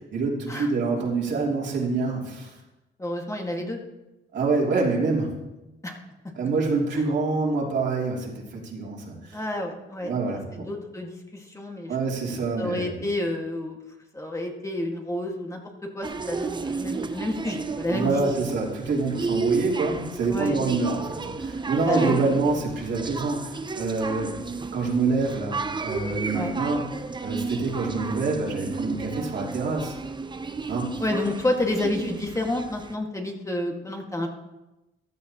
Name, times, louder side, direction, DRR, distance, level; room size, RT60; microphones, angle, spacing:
voice 1, 0.1-2.5 4.3-5.4 6.4-9.4 10.0-10.7 11.9-13.0 17.9-24.4 24.7-26.8 27.2-29.9 30.7-31.0, right 3 dB, 65° right, -3 dB, 3.1 m, -26 dB
voice 2, 3.0-3.8 5.8-6.0 9.3-10.1 10.5-11.9 12.3-13.8 14.1-15.6 15.9-18.2 20.3-20.6 21.8-22.2 26.3-26.5 31.0-34.3, left 1 dB, 15° left, 1 dB, 1.9 m, -29 dB
sound 1, 16.0-33.0, right 4 dB, 25° right, 0.7 m, -33 dB
14.5 x 11.0 x 3.0 m, 1.0 s
cardioid pair, 90°, 20 cm